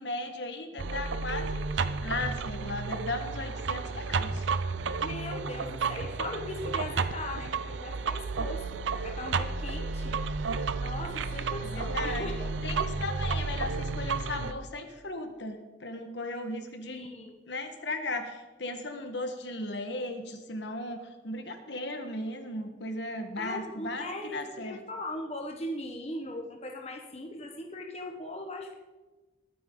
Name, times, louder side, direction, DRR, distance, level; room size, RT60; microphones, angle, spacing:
voice 1, 0.0-1.6 2.0-4.5 11.6-12.3 12.6-17.0 17.5-24.8, left 2 dB, 65° left, 6 dB, 1.5 m, -36 dB
sound 1, 0.8-14.5, right 4 dB, 75° right, 0.6 m, -32 dB
voice 2, 5.0-10.2 10.8-12.5 16.8-17.3 23.4-28.8, left 1 dB, 35° left, 2 dB, 1.3 m, -39 dB
21.0 x 9.5 x 3.9 m, 1.2 s
head